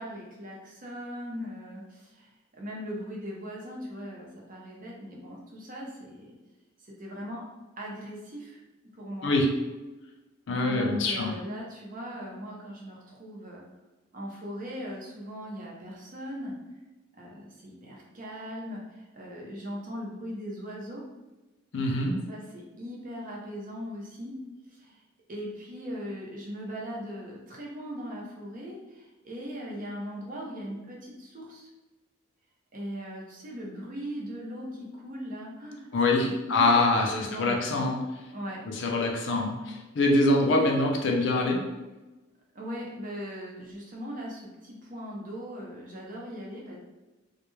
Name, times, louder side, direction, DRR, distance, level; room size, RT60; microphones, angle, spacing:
voice 1, 0.0-1.8 2.6-6.3 7.0-7.4 7.8-8.6 9.0-9.4 10.6-13.6 14.1-16.5 17.2-18.8 19.1-21.0 22.1-24.3 25.3-28.8 29.2-31.6 32.7-37.9 38.3-38.6 42.6-44.5 44.9-46.8, equal, 45° right, -3 dB, 0.6 m, -39 dB
voice 2, 10.5-11.4 21.7-22.1 35.9-38.0 38.7-41.6, left 2 dB, 65° left, 0 dB, 0.5 m, -24 dB
2.2 x 2.2 x 3.1 m, 1.1 s
head